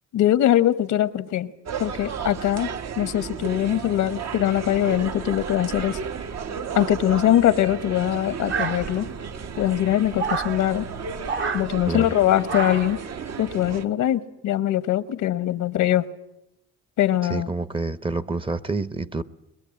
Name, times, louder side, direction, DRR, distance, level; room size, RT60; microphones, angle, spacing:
voice 1, 0.1-1.5 1.8-2.7 3.0-6.0 6.7-9.1 9.6-10.9 11.5-13.0 13.4-16.1 17.0-17.5, left 12 dB, 80° left, 1.1 m, -22 dB
sound 1, 1.7-13.9, right 6 dB, 60° right, 1.2 m, -33 dB
sound 2, 8.5-9.2 10.2-10.6 11.2-11.7 12.5-13.0, right 5 dB, 40° right, 1.0 m, -28 dB
voice 2, 17.3-19.2, right 3 dB, 15° right, 0.8 m, -28 dB
22.5 x 21.0 x 8.5 m
cardioid pair, 90°, 30 cm